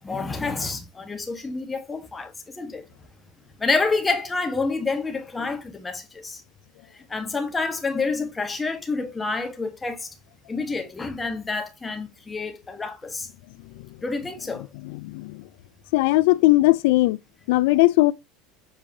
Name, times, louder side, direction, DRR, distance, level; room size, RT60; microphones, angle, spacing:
voice 1, 0.0-2.9 3.6-6.4 6.9-10.2 10.5-13.3 14.0-14.7, left 3 dB, 15° left, 1.4 m, -28 dB
voice 2, 14.8-15.3 15.9-17.2 17.5-18.1, left 19 dB, 80° left, 0.3 m, -18 dB
7.3 x 4.8 x 2.7 m
cardioid pair, 150°, 0 cm